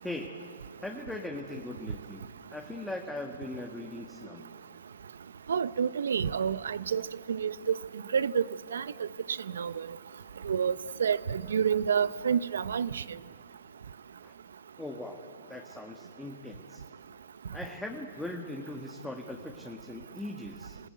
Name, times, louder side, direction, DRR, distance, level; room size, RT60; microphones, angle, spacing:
voice 1, 0.0-0.4 0.8-2.3 2.5-4.4 14.2-14.3 14.8-15.2 15.5-16.8 17.5-20.8, left 2 dB, 5° left, 2 dB, 1.7 m, -40 dB
voice 2, 5.5-7.0 7.3-7.8 8.1-8.4 8.7-9.1 9.6-9.9 10.4-10.7 11.0-13.0, right 7 dB, 80° right, 17 dB, 0.7 m, -28 dB
26.5 x 18.5 x 9.4 m, 2.2 s
hypercardioid pair, 125°, 0 cm